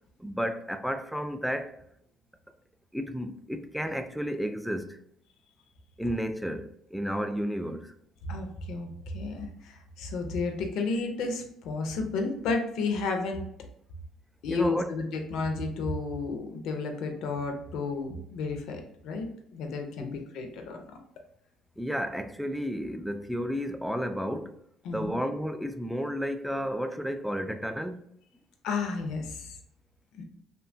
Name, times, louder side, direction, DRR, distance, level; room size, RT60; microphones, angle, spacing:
voice 1, 0.2-1.8 2.9-5.0 6.0-7.9 14.5-14.9 20.0-20.2 21.8-24.6 24.9-28.0, equal, ahead, 0.3 m, -32 dB
voice 2, 8.2-13.5 14.4-19.3 19.5-21.0 24.8-25.2 28.6-29.6 30.1-30.2, left 3 dB, 70° left, 0.5 m, -32 dB
2.7 x 2.2 x 2.5 m
supercardioid pair, 70°, 0 cm